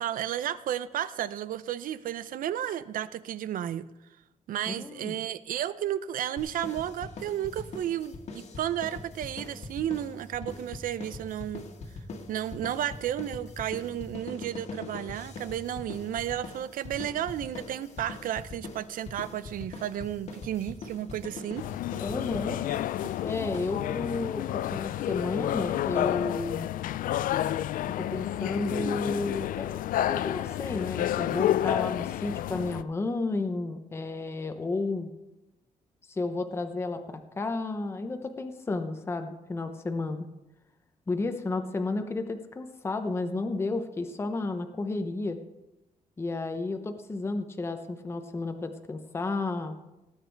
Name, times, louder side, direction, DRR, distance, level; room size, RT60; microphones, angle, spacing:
voice 1, 0.0-3.8 4.5-11.7 12.3-21.7, right 11 dB, 75° right, 16 dB, 0.6 m, -33 dB
voice 2, 4.7-5.2 22.0-22.6 23.2-26.7 28.0-35.1 36.1-40.3 41.1-45.4 46.2-49.7, left 3 dB, 15° left, 7 dB, 0.8 m, -32 dB
sound 1, 6.4-24.1, left 3 dB, 55° left, 1.7 m, -42 dB
sound 2, 8.6-16.3, equal, 30° right, 5.1 m, -51 dB
sound 3, 21.6-32.8, left 12 dB, 75° left, 0.4 m, -30 dB
18.5 x 8.2 x 4.6 m, 0.97 s
wide cardioid pair, 175°, 14 cm